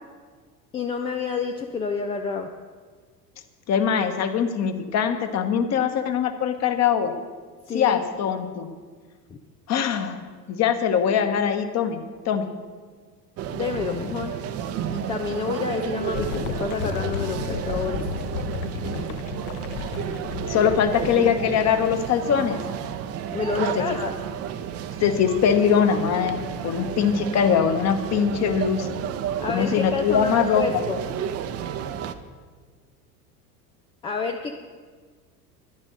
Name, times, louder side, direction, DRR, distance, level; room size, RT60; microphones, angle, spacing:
voice 1, 0.7-2.5 7.7-8.0 9.3-9.4 13.5-14.3 14.9-18.0 23.3-24.1 29.4-31.0 34.0-34.5, left 5 dB, 10° left, 4 dB, 0.3 m, -29 dB
voice 2, 3.7-7.1 7.7-8.7 9.7-10.2 10.5-12.5 20.5-22.6 23.6-23.8 25.0-26.4 26.6-28.9 29.5-30.8, left 7 dB, 35° left, 8 dB, 1.2 m, -22 dB
sound 1, 13.4-32.1, right 9 dB, 30° right, 0.7 m, -32 dB
sound 2, 16.1-21.9, left 7 dB, 50° left, 0.9 m, -33 dB
11.0 x 9.8 x 6.5 m, 1.5 s
figure-of-eight pair, 75°, 48 cm